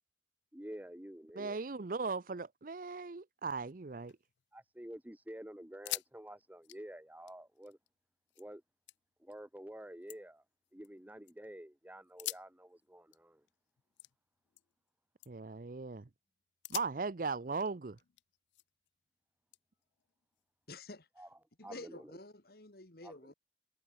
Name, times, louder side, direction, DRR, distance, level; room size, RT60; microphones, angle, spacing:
voice 1, 0.5-1.6 4.5-7.8 8.4-8.6 9.2-10.4 10.7-13.4 21.2-21.3 21.6-22.1 23.0-23.3, right 1 dB, 10° right, 0.9 m, -49 dB
voice 2, 1.3-4.1 15.3-16.1 16.7-18.0, right 4 dB, 50° right, 0.6 m, -38 dB
sound 1, 4.1-4.9 5.2-5.3 5.7-6.1 6.4-8.5 8.9-9.4 9.8-11.3 12.0-14.9 15.2-15.6 16.0-16.2 16.6-18.9 19.5-20.7, left 18 dB, 90° left, 0.4 m, -48 dB
voice 3, 20.7-21.2 21.6-23.3, left 2 dB, 60° left, 2.6 m, -50 dB
head